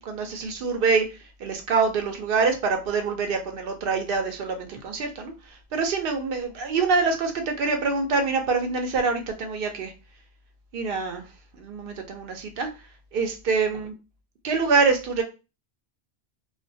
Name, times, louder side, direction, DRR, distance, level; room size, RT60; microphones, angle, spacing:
voice 1, 0.0-1.1 1.4-5.3 5.7-9.9 10.7-11.2 11.6-12.7 13.1-13.9 14.4-15.2, right 4 dB, 60° right, 5 dB, 0.7 m, -25 dB
2.2 x 2.1 x 2.6 m, 0.29 s
omnidirectional pair, 1.2 m